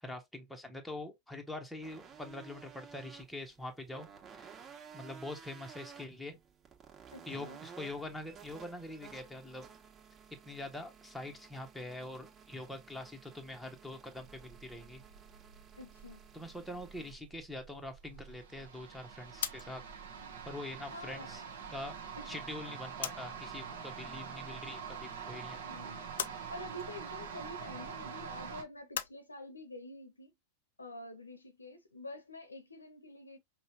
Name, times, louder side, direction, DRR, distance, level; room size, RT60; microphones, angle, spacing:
voice 1, 0.0-4.1 4.3-4.6 4.9-6.4 7.3-9.7 10.4-15.0 16.3-19.8 20.4-21.4 21.7-22.0 22.3-25.6, left 1 dB, ahead, 1.0 m, -44 dB
sound 1, 1.8-17.1, right 7 dB, 25° right, 1.4 m, -55 dB
voice 2, 7.1-7.6 15.8-16.2 20.9-21.3 22.2-22.4 25.6-26.0 26.5-30.3 30.8-33.4, left 1 dB, 80° left, 0.8 m, -47 dB
sound 2, 14.2-28.6, right 6 dB, 60° right, 1.1 m, -46 dB
sound 3, 19.4-23.5 23.8-24.8 25.2-29.2, left 9 dB, 60° left, 0.4 m, -43 dB
5.3 x 2.2 x 2.7 m
figure-of-eight pair, 90°, 0 cm